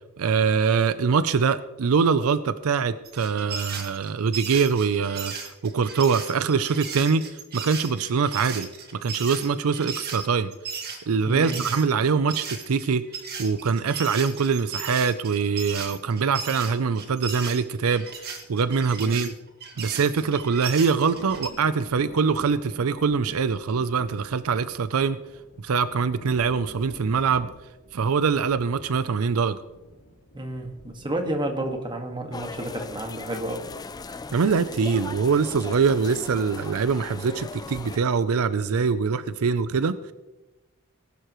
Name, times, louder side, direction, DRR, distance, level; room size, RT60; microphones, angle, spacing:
voice 1, 0.2-7.3 7.5-8.7 9.0-10.5 11.1-13.0 13.4-19.3 19.8-25.2 25.6-27.5 27.9-29.6 34.3-40.1, right 5 dB, 80° right, 14 dB, 0.5 m, -23 dB
sound 1, 3.0-11.8 12.3-21.5, right 6 dB, 50° right, 1.8 m, -36 dB
voice 2, 11.3-11.6 19.0-19.1 30.3-33.6, right 1 dB, 20° right, 3 dB, 1.7 m, -31 dB
sound 2, 19.7-33.9 34.4-34.7 35.6-35.8 36.6-36.7 38.2-38.3, left 1 dB, 85° left, 3.2 m, -48 dB
sound 3, 32.3-38.0, left 4 dB, 20° left, 0.3 m, -38 dB
19.5 x 11.0 x 3.1 m, 1.1 s
head